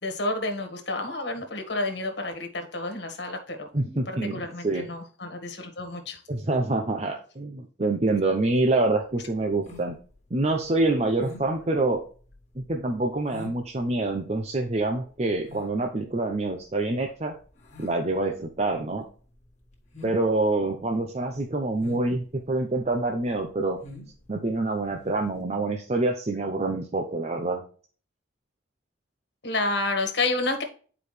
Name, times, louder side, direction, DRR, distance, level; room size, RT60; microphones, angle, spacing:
voice 1, 0.0-6.2 29.4-30.6, left 2 dB, 65° left, 4 dB, 1.7 m, -30 dB
voice 2, 3.7-4.9 6.3-9.9 10.3-12.0 12.6-17.3 17.8-19.0 20.0-23.8 24.3-27.6, right 2 dB, 35° right, 3 dB, 0.7 m, -26 dB
sound 1, 9.0-25.4, left 2 dB, 40° left, 1.8 m, -48 dB
9.4 x 4.9 x 3.3 m, 0.41 s
head